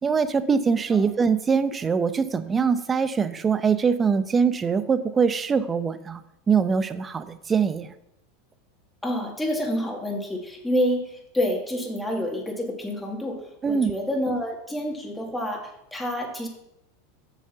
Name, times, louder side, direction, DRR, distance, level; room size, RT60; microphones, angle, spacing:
voice 1, 0.0-6.2 6.5-7.9 13.6-13.9, right 6 dB, 25° right, 13 dB, 0.7 m, -23 dB
voice 2, 9.0-13.4 13.7-16.5, equal, 5° left, 0 dB, 2.2 m, -28 dB
7.4 x 6.5 x 5.7 m, 0.82 s
hypercardioid pair, 105°, 0 cm